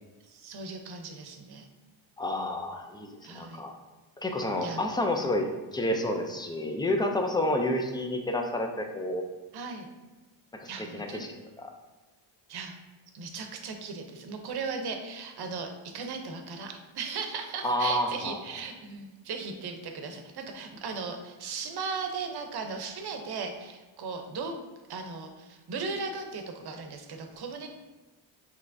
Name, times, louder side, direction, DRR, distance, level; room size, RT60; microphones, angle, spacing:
voice 1, 0.3-1.7 3.2-3.6 4.6-4.8 9.5-9.9 10.6-11.2 12.5-12.7 13.1-24.5 24.9-27.7, right 4 dB, 50° right, 5 dB, 0.8 m, -37 dB
voice 2, 2.2-3.7 4.2-9.2 10.5-11.7 17.6-18.4, left 1 dB, 10° left, 3 dB, 0.4 m, -30 dB
5.6 x 3.1 x 2.6 m, 1.2 s
cardioid pair, 105°, 49 cm